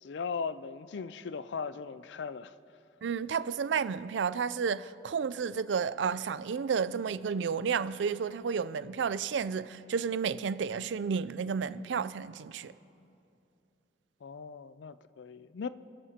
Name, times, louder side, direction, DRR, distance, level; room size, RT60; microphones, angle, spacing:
voice 1, 0.0-2.5 14.2-15.7, left 5 dB, 75° left, 0.4 m, -38 dB
voice 2, 3.0-12.7, right 6 dB, 80° right, 0.4 m, -31 dB
28.0 x 11.0 x 2.9 m
head